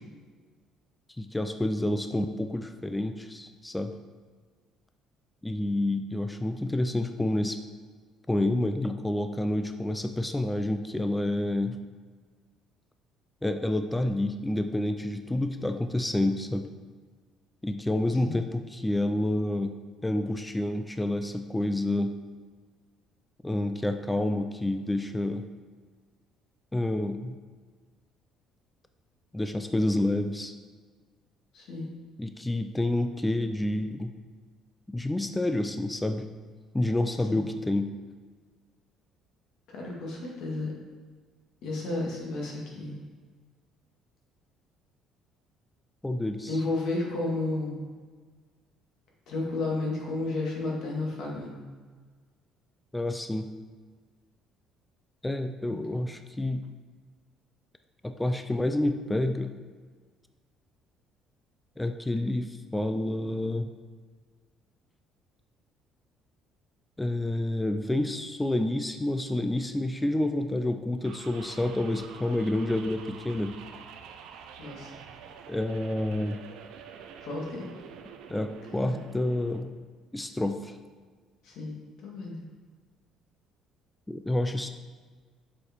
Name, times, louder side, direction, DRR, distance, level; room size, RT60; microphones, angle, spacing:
voice 1, 1.2-3.9 5.4-7.6 8.3-11.8 13.4-16.7 17.6-19.7 20.0-22.1 23.4-25.4 26.7-27.4 29.3-30.5 32.2-34.1 34.9-36.3 36.7-37.9 46.0-46.6 52.9-53.5 55.2-56.7 58.0-59.5 61.8-63.7 67.0-73.5 75.5-76.4 78.3-79.7 80.1-80.8 84.1-84.7, left 1 dB, 5° left, 7 dB, 0.3 m, -29 dB
voice 2, 31.5-31.9 37.3-37.4 39.7-40.7 41.6-43.0 46.5-47.9 49.3-51.7 55.7-55.9 74.6-74.9 77.2-77.7 78.9-79.0 81.4-81.8 82.0-82.5, left 2 dB, 60° left, -2 dB, 2.0 m, -32 dB
sound 1, 71.0-79.6, right 7 dB, 75° right, 0.6 m, -47 dB
6.9 x 4.8 x 4.5 m, 1.5 s
cardioid pair, 165°, 0 cm